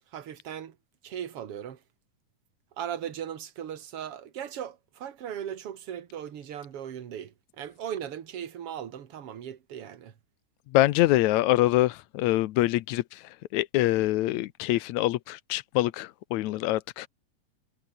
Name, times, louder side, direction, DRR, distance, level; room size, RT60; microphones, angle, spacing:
voice 1, 0.1-0.8 1.0-1.8 2.8-10.1, right 9 dB, 50° right, 2.5 m, -38 dB
voice 2, 10.7-13.2 13.5-17.1, left 16 dB, 75° left, 2.0 m, -25 dB
omnidirectional pair, 3.6 m